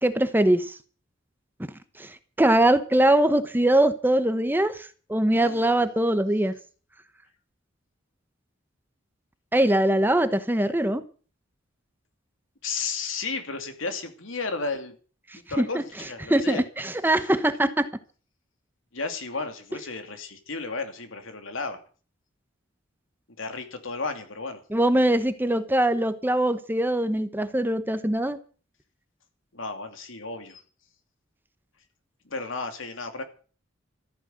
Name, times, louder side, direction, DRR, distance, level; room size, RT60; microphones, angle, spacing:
voice 1, 0.0-0.8 2.0-6.5 9.5-11.0 15.6-15.7 16.3-17.9 24.7-28.4, right 1 dB, 10° right, 0.9 m, -22 dB
voice 2, 5.4-5.9 12.6-15.0 15.5-16.6 18.9-21.8 23.4-24.6 29.5-30.6 32.2-33.2, left 4 dB, 75° left, 2.7 m, -33 dB
14.0 x 9.9 x 7.9 m
head